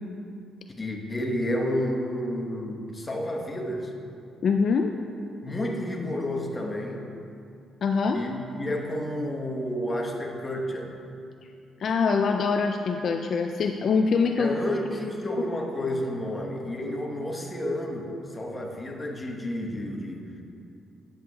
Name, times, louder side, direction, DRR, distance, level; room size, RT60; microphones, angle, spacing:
voice 1, 0.8-3.9 5.4-7.0 8.1-10.9 14.4-20.3, left 1 dB, 20° left, 1 dB, 1.0 m, -30 dB
voice 2, 4.4-4.9 7.8-8.2 11.8-14.5, left 5 dB, 55° left, 5 dB, 0.3 m, -24 dB
12.0 x 8.0 x 2.3 m, 2.6 s
cardioid pair, 90°, 0 cm